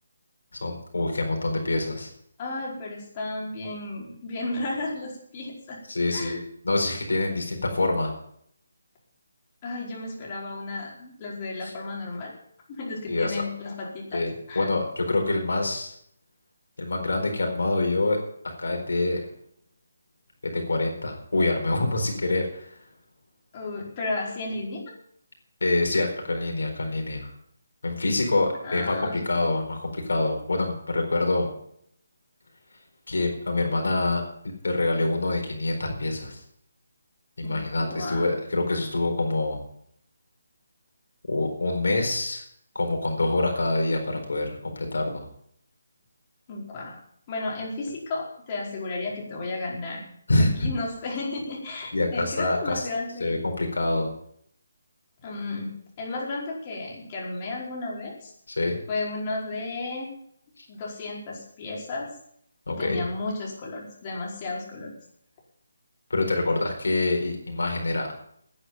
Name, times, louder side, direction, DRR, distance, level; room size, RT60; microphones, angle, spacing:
voice 1, 0.6-2.1 5.9-6.4 6.6-8.1 11.6-11.7 13.1-13.4 14.1-15.9 16.8-18.2 18.6-19.2 20.4-22.7 25.6-27.3 27.8-31.5 33.1-34.2 34.6-36.4 37.4-39.6 41.3-42.4 42.7-45.3 50.3-50.7 51.9-52.9 53.2-54.1 58.6-58.8 62.7-63.0 66.1-68.1, left 2 dB, 75° left, 2 dB, 4.4 m, -26 dB
voice 2, 2.4-5.8 6.1-6.4 9.6-12.3 12.7-14.2 14.5-14.7 23.5-24.8 28.6-29.2 37.4-38.3 46.5-47.0 47.3-50.0 50.4-53.4 55.2-58.3 58.9-60.1 60.7-62.1 62.7-64.9, left 2 dB, 30° left, -3 dB, 4.8 m, -33 dB
10.0 x 9.9 x 9.1 m, 0.68 s
figure-of-eight pair, 155°, 0 cm